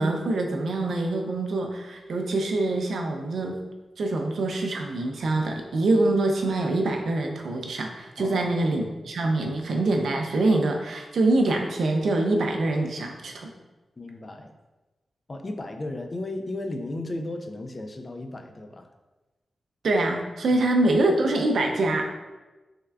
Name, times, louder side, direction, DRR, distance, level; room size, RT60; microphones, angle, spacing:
voice 1, 0.0-3.6 4.0-13.5 19.8-22.1, right 2 dB, 85° right, 3 dB, 0.4 m, -25 dB
voice 2, 8.2-8.5 14.0-14.5 15.3-18.9 20.5-20.6, left 2 dB, 35° left, 5 dB, 0.3 m, -35 dB
3.5 x 2.3 x 3.3 m, 1.1 s
wide cardioid pair, 90°, 0 cm